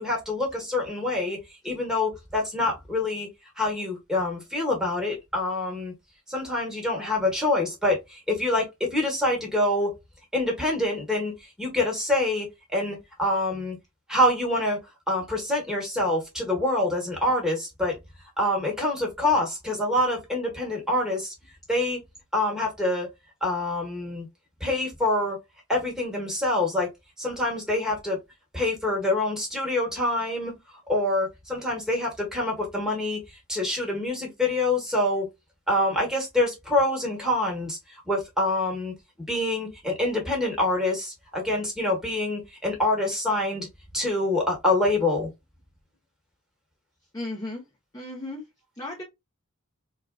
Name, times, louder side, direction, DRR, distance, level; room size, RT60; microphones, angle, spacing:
voice 1, 0.0-1.4 1.6-3.3 3.6-5.9 6.3-9.9 10.3-11.3 11.6-12.5 12.7-13.8 14.1-14.8 15.1-18.0 18.4-21.3 21.7-22.0 22.3-23.1 23.4-24.3 24.6-25.4 25.7-26.9 27.2-28.2 28.5-30.6 30.9-35.3 35.7-37.8 38.1-38.9 39.3-43.7 43.9-45.3, left 1 dB, 5° right, 1.2 m, -26 dB
voice 2, 47.1-47.6 47.9-48.4 48.8-49.0, left 2 dB, 15° left, 0.8 m, -34 dB
3.7 x 2.4 x 2.2 m
head